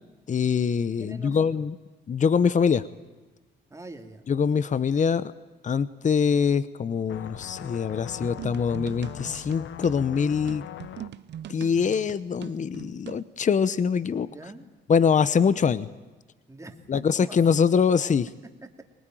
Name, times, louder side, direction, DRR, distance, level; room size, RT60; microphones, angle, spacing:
voice 1, 0.3-1.7 2.1-2.8 4.3-5.3 5.6-10.6 11.5-14.3 14.9-15.9 16.9-18.3, left 6 dB, 40° left, 16 dB, 0.9 m, -23 dB
voice 2, 1.0-1.6 3.7-4.3 14.2-14.6 16.5-17.4 18.6-18.7, right 2 dB, 15° right, 5 dB, 2.8 m, -44 dB
sound 1, 7.1-11.1, left 10 dB, 75° left, 1.1 m, -41 dB
sound 2, 8.2-13.3, right 10 dB, 60° right, 0.9 m, -41 dB
24.0 x 20.0 x 9.2 m, 1.2 s
cardioid pair, 90°, 20 cm